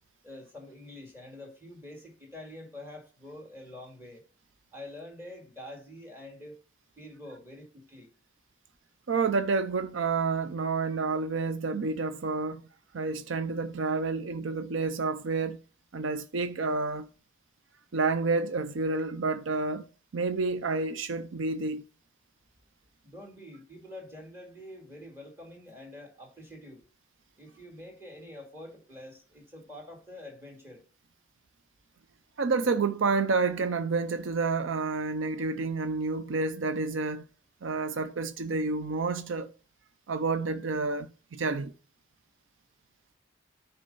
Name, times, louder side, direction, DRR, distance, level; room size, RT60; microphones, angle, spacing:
voice 1, 0.2-4.2 4.7-6.6 7.0-8.1 23.0-26.8 27.4-30.9, left 1 dB, 10° right, 2.2 m, -46 dB
voice 2, 9.1-12.6 12.9-15.6 15.9-17.1 17.9-19.9 20.1-21.8 32.4-37.2 37.6-39.5 40.1-41.7, right 4 dB, 80° right, 0.5 m, -29 dB
9.7 x 4.4 x 5.4 m
head